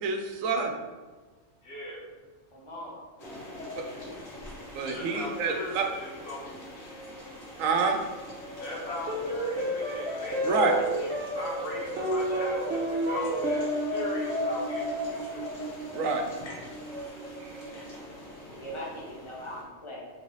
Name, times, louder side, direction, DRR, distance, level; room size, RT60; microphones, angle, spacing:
voice 1, 0.0-0.7 4.7-5.8 7.6-8.0 10.4-10.7 15.9-16.2, right 4 dB, 85° right, 3 dB, 1.0 m, -27 dB
voice 2, 1.6-2.0 4.9-6.5 8.6-15.5 17.9-18.5, left 1 dB, 65° left, -6 dB, 1.5 m, -39 dB
voice 3, 2.5-3.0 18.6-20.1, equal, 25° left, -4 dB, 0.9 m, -40 dB
sound 1, 3.2-19.6, left 2 dB, 85° left, 1.5 m, -40 dB
sound 2, 9.1-17.7, right 1 dB, 60° right, 1.0 m, -32 dB
3.6 x 3.1 x 4.0 m, 1.3 s
omnidirectional pair, 1.3 m